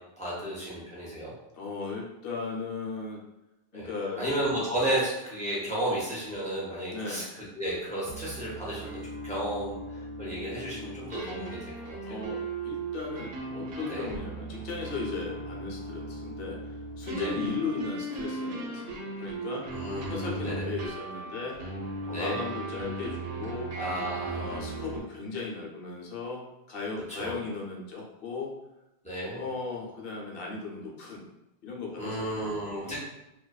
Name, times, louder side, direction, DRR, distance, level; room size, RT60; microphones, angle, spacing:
voice 1, 0.2-1.3 3.7-3.9 4.2-12.2 13.9-14.1 17.2-17.3 19.7-20.7 22.1-22.4 23.7-24.6 27.1-27.4 29.0-29.4 32.0-33.0, right 1 dB, 10° left, -8 dB, 0.6 m, -33 dB
voice 2, 1.5-3.2 3.7-4.2 5.8-5.9 6.9-7.3 12.0-21.6 22.1-23.7 24.3-28.5 29.3-31.2 31.6-33.0, left 4 dB, 60° left, -2 dB, 0.7 m, -37 dB
sound 1, 8.1-25.0, right 2 dB, 75° right, 0.8 m, -37 dB
2.5 x 2.2 x 2.2 m, 0.92 s
omnidirectional pair, 1.2 m